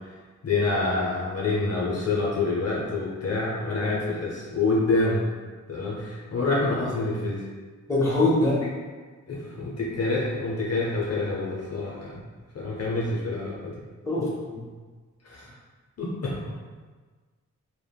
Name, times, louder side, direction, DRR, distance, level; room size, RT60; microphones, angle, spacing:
voice 1, 0.4-5.3 5.7-7.4 9.3-12.1 12.5-13.7 15.2-15.5 16.0-16.6, left 3 dB, 55° left, -5 dB, 0.6 m, -27 dB
voice 2, 7.9-8.6 14.1-14.6, left 2 dB, 10° left, -7 dB, 0.8 m, -23 dB
3.3 x 2.1 x 2.2 m, 1.4 s
wide cardioid pair, 90°, 30 cm